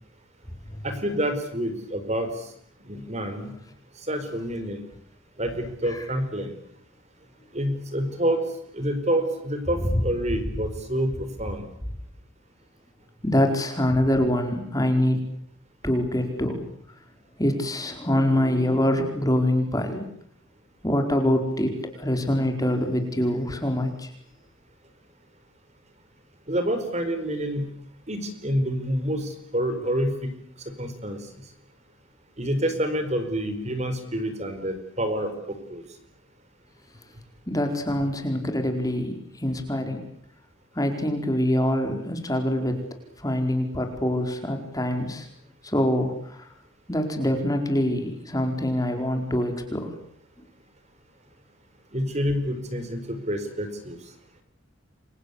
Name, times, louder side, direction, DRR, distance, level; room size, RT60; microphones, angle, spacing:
voice 1, 0.8-2.3 2.9-3.5 4.1-4.8 5.4-6.5 7.5-8.4 8.7-11.6 26.5-27.7 28.1-30.3 30.7-31.2 32.4-35.8 51.9-54.0, equal, 35° right, 8 dB, 4.6 m, -28 dB
voice 2, 13.2-15.2 15.8-16.6 17.4-20.0 20.8-24.1 37.5-40.0 40.7-42.8 43.2-45.3 45.6-46.5 46.9-49.9, left 1 dB, 15° left, 5 dB, 4.7 m, -25 dB
29.5 x 24.5 x 8.2 m, 0.64 s
head